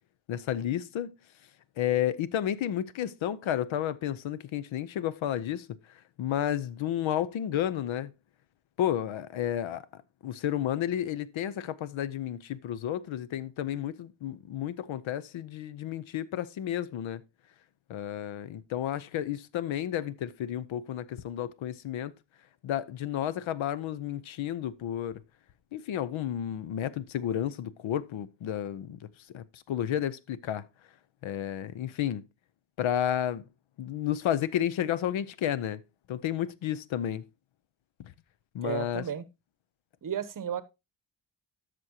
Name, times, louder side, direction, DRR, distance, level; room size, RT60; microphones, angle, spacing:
voice 1, 0.3-1.2 1.8-5.8 6.2-8.1 8.8-9.8 10.2-17.2 17.9-22.1 22.6-25.2 25.7-29.0 29.3-30.6 31.2-32.2 32.8-33.5 33.8-35.8 36.1-37.2 38.0-38.1 38.5-39.0, left 10 dB, 75° left, 0.7 m, -31 dB
voice 2, 38.6-39.2 40.0-40.6, right 9 dB, 40° right, 0.8 m, -33 dB
12.5 x 6.2 x 2.8 m
cardioid pair, 110°, 47 cm